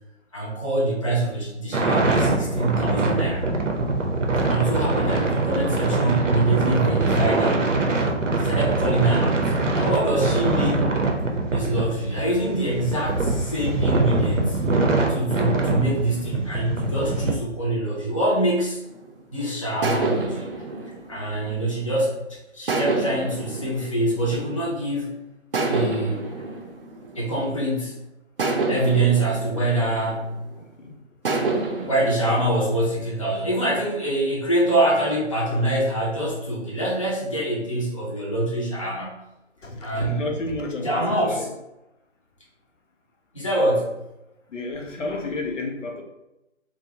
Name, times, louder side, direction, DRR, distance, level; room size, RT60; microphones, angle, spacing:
voice 1, 0.3-3.5 4.4-7.6 8.4-11.0 11.5-14.7 15.1-18.8 19.3-20.5 21.1-22.2 22.5-25.2 25.7-26.2 27.1-27.9 28.7-30.4 31.8-39.2 39.8-40.3 40.8-41.5 43.3-44.0, right 1 dB, 30° left, -6 dB, 0.4 m, -24 dB
sound 1, 1.7-17.3, right 2 dB, 90° right, 0.6 m, -23 dB
sound 2, 18.9-19.2 19.8-22.1 22.7-24.9 25.5-27.7 28.4-30.6 31.2-32.8, right 3 dB, 50° right, 0.5 m, -28 dB
voice 2, 39.6-41.5 44.5-46.0, left 2 dB, 80° left, 2 dB, 0.7 m, -31 dB
2.7 x 2.0 x 2.7 m, 0.93 s
figure-of-eight pair, 150°, 37 cm